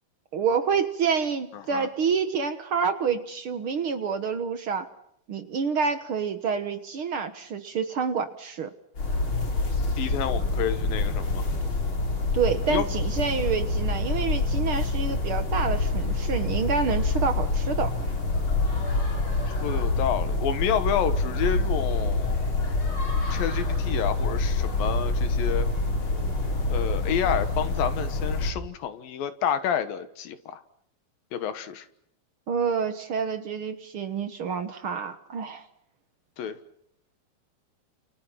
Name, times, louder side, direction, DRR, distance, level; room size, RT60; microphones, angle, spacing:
voice 1, 0.3-4.9 5.3-8.7 12.3-17.9 32.5-35.6, right 6 dB, 70° right, 9 dB, 1.2 m, -28 dB
voice 2, 1.5-1.9 10.0-11.5 12.7-12.9 19.5-22.4 23.3-25.7 26.7-30.6 31.3-31.9 36.4-36.6, left 8 dB, 70° left, 12 dB, 2.9 m, -29 dB
sound 1, 9.0-28.5, left 2 dB, 30° left, 4.3 m, -26 dB
29.5 x 29.0 x 5.8 m, 0.73 s
omnidirectional pair, 4.6 m